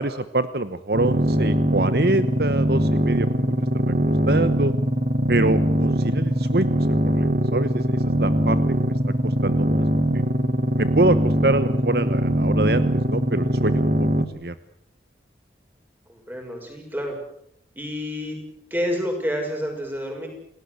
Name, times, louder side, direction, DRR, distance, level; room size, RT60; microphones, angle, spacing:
voice 1, 0.0-3.9 4.3-4.7 5.3-8.9 9.2-9.9 10.1-10.2 10.8-14.5, right 2 dB, 60° right, 13 dB, 1.0 m, -25 dB
sound 1, 0.9-14.3, equal, 45° right, 1.7 m, -22 dB
voice 2, 16.1-17.2 17.8-18.4 18.7-20.3, equal, 10° right, 2 dB, 6.5 m, -28 dB
28.5 x 18.0 x 8.0 m, 0.71 s
head